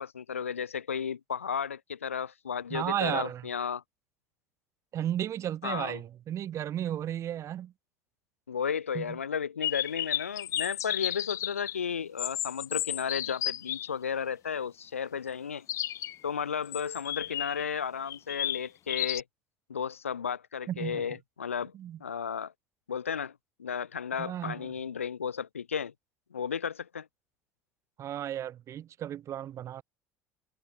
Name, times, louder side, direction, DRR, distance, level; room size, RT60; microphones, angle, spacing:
voice 1, 0.0-3.8 5.6-6.0 8.5-15.7 16.2-19.2 19.7-21.7 22.0-22.5 22.9-25.9 26.3-27.1, left 7 dB, 80° left, 2.2 m, -34 dB
voice 2, 2.7-3.5 4.9-7.7 8.9-9.2 20.7-21.0 21.7-22.0 24.2-24.7 28.0-29.8, right 11 dB, 45° right, 2.3 m, -34 dB
sound 1, 9.6-11.8 12.2-13.9 15.7-16.2 16.7-17.6 18.1-19.2, left 12 dB, 45° left, 2.4 m, -33 dB
figure-of-eight pair, 65°, 7 cm